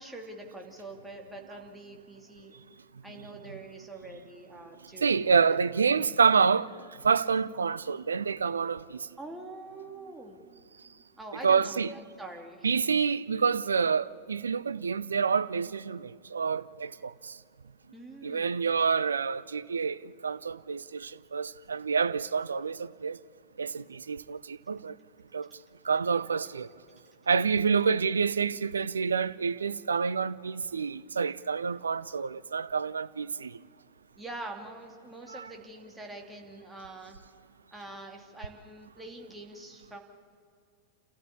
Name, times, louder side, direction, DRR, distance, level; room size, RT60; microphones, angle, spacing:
voice 1, 0.0-2.5 3.0-5.6 6.0-6.1 9.2-12.7 17.9-18.6 34.2-37.2 37.7-40.0, right 2 dB, 10° right, 2.7 m, -44 dB
voice 2, 5.0-6.7 7.0-9.0 11.4-11.9 12.6-17.3 18.2-23.2 23.6-24.9 25.3-25.5 25.8-26.7 27.3-33.6 35.3-35.5, right 5 dB, 75° right, 0.5 m, -28 dB
28.5 x 14.5 x 8.6 m
figure-of-eight pair, 90°, 0 cm